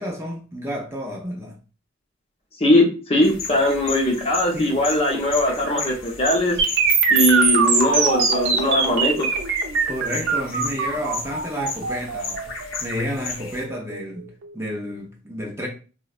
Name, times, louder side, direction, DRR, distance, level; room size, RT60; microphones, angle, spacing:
voice 1, 0.0-1.6 4.5-4.8 9.9-12.5 12.8-15.7, equal, 15° right, 0.4 m, -30 dB
voice 2, 2.6-6.6 7.1-9.3, left 1 dB, 30° left, 0.7 m, -20 dB
sound 1, 3.2-13.7, left 4 dB, 75° left, 0.7 m, -35 dB
sound 2, 6.6-14.5, right 5 dB, 60° right, 0.6 m, -22 dB
3.8 x 2.1 x 2.4 m
head